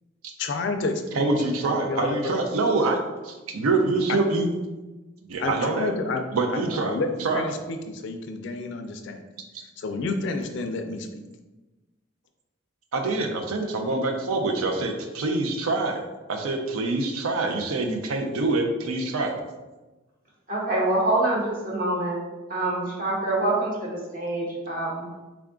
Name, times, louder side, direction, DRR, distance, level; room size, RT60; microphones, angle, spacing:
voice 1, 0.4-1.3 1.6-2.4 4.1-4.2 5.4-6.2 6.5-9.2 9.8-11.1, left 3 dB, 55° left, 7 dB, 0.3 m, -30 dB
voice 2, 1.1-4.5 5.3-5.9 6.3-7.4 12.9-16.0 16.3-19.3, right 3 dB, 85° right, 3 dB, 0.5 m, -25 dB
voice 3, 20.5-22.2 22.5-25.1, right 2 dB, 40° right, -4 dB, 1.0 m, -25 dB
3.6 x 2.3 x 3.6 m, 1.2 s
head